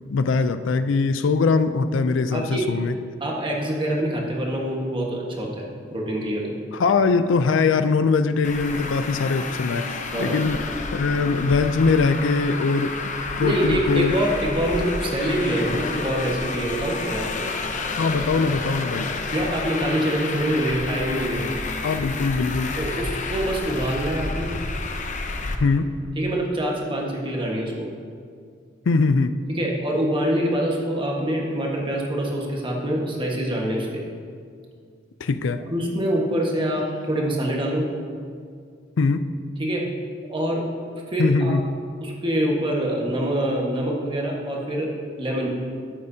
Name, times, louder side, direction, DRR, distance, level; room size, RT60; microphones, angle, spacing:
voice 1, 0.1-2.9 6.8-10.6 10.9-13.1 13.4-14.2 18.0-19.1 21.8-22.7 25.6-26.0 28.9-29.3 35.2-35.6 39.0-39.2 41.2-41.6, left 4 dB, 80° left, 11 dB, 0.4 m, -21 dB
voice 2, 2.3-2.7 3.2-5.6 5.9-6.5 10.1-10.4 13.4-17.4 19.3-21.4 22.8-24.5 26.2-27.9 29.5-33.9 35.7-37.8 39.6-39.9 40.3-40.6 41.1-41.5 42.0-44.9 45.2-45.5, right 1 dB, 25° right, -2 dB, 1.4 m, -25 dB
Traffic noise roadway noise, 8.4-25.5, left 3 dB, 40° left, 0.7 m, -30 dB
12.5 x 8.5 x 2.8 m, 2.2 s
head